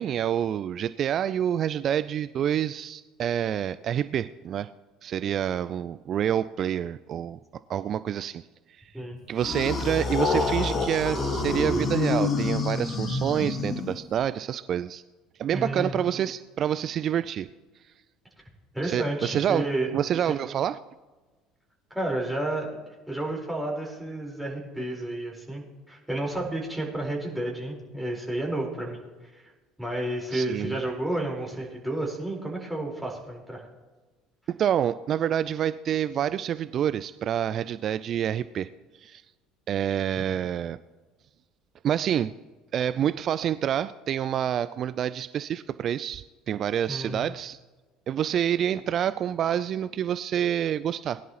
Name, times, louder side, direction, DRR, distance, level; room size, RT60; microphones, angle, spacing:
voice 1, 0.0-4.7 5.0-7.4 7.7-8.4 9.3-15.0 15.4-17.5 18.8-19.7 19.9-20.8 30.3-30.8 34.5-38.7 39.0-39.2 39.7-40.8 41.8-42.3 42.7-47.6 48.1-51.2, right 9 dB, 40° right, 16 dB, 0.3 m, -27 dB
sound 1, 9.4-14.2, left 3 dB, 30° left, 1.7 m, -27 dB
voice 2, 15.5-15.9 18.7-19.9 21.9-29.0 29.3-29.4 29.8-33.7 46.9-47.2, right 1 dB, 5° right, -2 dB, 4.3 m, -31 dB
20.5 x 11.0 x 3.0 m, 1.2 s
figure-of-eight pair, 60°, 0 cm